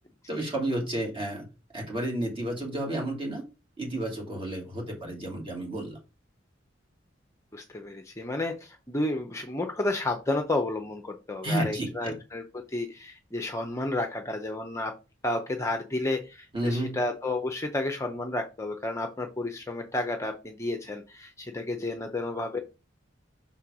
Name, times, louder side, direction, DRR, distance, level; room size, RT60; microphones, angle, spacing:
voice 1, 0.3-1.5 1.7-3.4 3.8-6.0 11.4-12.1 16.5-17.0, right 1 dB, 30° right, 0 dB, 2.6 m, -31 dB
voice 2, 7.5-14.9 15.2-22.6, left 2 dB, 15° left, 5 dB, 0.6 m, -31 dB
5.9 x 4.4 x 4.8 m, 0.29 s
head